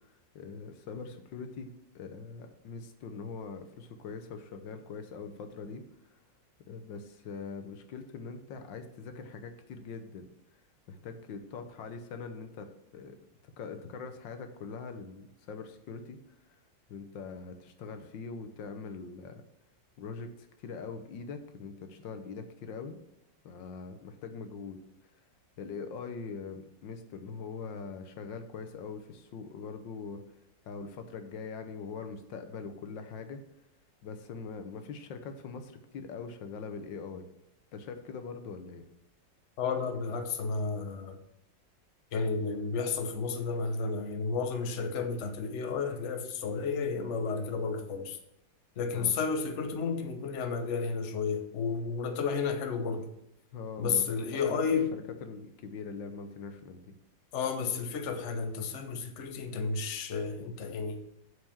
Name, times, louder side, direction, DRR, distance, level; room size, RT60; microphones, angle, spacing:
voice 1, 0.3-6.2 6.7-10.2 10.9-13.2 13.6-16.2 16.9-19.4 20.0-20.3 20.6-23.0 23.4-24.8 25.6-30.2 30.7-33.4 34.0-37.2 37.7-38.8 48.9-49.1 53.5-54.6 54.9-56.9, left 5 dB, 80° left, 1.6 m, -42 dB
voice 2, 39.6-41.2 42.1-48.2 48.8-53.1 53.8-54.9 57.3-61.0, left 5 dB, 45° left, 1.1 m, -32 dB
7.9 x 4.8 x 7.1 m
omnidirectional pair, 2.0 m